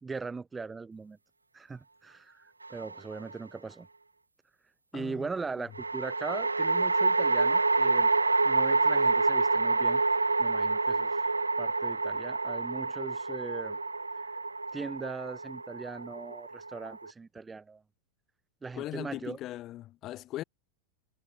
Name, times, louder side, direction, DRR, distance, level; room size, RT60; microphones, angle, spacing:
voice 1, 0.0-1.2 1.5-3.9 4.9-8.1 8.4-10.0 10.4-11.2 11.6-13.8 14.7-17.8 18.6-19.4, right 4 dB, 15° right, 4.2 m, -40 dB
sound 1, 2.6-3.3 5.8-17.1, right 3 dB, 80° right, 0.7 m, -28 dB
voice 2, 4.9-5.3 5.6-5.7 18.7-20.4, left 14 dB, 35° left, 2.5 m, -39 dB
figure-of-eight pair, 90°, 0 cm